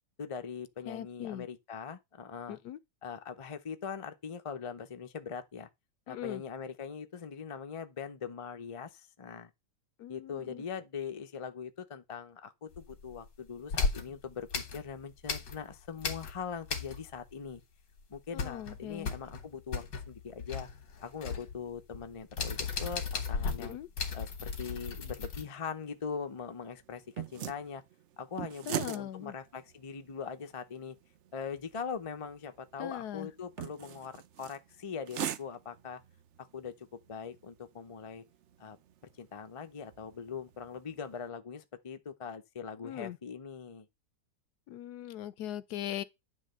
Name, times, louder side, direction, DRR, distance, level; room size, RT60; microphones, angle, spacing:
voice 1, 0.2-2.6 3.0-5.7 6.1-9.5 10.1-17.6 18.1-20.7 21.0-23.8 24.1-27.8 28.2-31.0 31.3-36.0 36.4-38.2 38.6-38.8 39.2-43.9, left 6 dB, 40° left, 0.4 m, -41 dB
voice 2, 0.9-1.5 2.5-2.8 6.1-6.4 10.0-10.6 18.3-19.1 23.6-23.9 28.7-29.3 32.8-33.3 42.8-43.2 44.7-46.0, left 11 dB, 70° left, 1.1 m, -40 dB
sound 1, 12.7-13.3 13.7-15.7 16.0-17.3 17.5-17.6 18.0-25.4, left 5 dB, 90° left, 2.2 m, -36 dB
sound 2, 25.5-41.3, right 11 dB, 65° right, 0.7 m, -45 dB
9.8 x 3.3 x 6.6 m
omnidirectional pair, 1.9 m